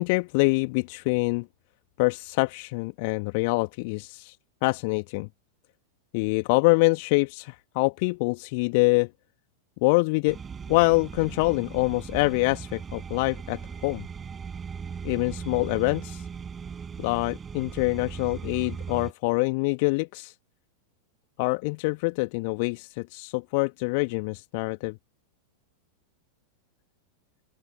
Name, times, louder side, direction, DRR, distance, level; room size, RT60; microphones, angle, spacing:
voice 1, 0.0-1.5 2.0-4.4 4.6-5.3 6.1-9.1 9.8-10.4 10.7-14.0 15.0-16.2 17.0-20.3 21.4-25.0, left 29 dB, 45° left, 1.6 m, -25 dB
sound 1, 10.3-19.1, right 6 dB, 20° right, 5.8 m, -38 dB
open air
figure-of-eight pair, 90°, 0 cm